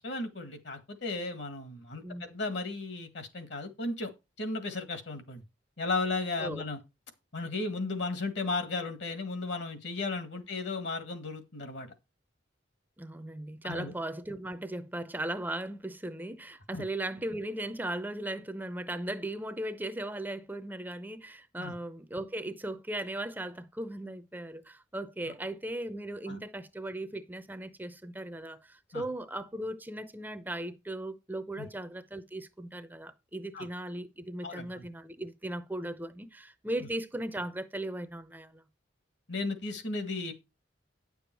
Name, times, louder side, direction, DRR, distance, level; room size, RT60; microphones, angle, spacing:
voice 1, 0.0-4.1 4.4-5.4 5.8-6.8 7.3-11.9 13.6-13.9 16.7-16.8 21.6-21.7 26.3-26.4 28.9-29.0 31.6-31.7 33.5-33.7 34.4-34.9 36.8-36.9 39.3-40.3, left 3 dB, 65° left, 1.8 m, -35 dB
voice 2, 13.0-38.6, right 1 dB, 10° right, 0.6 m, -37 dB
9.8 x 7.0 x 4.6 m
head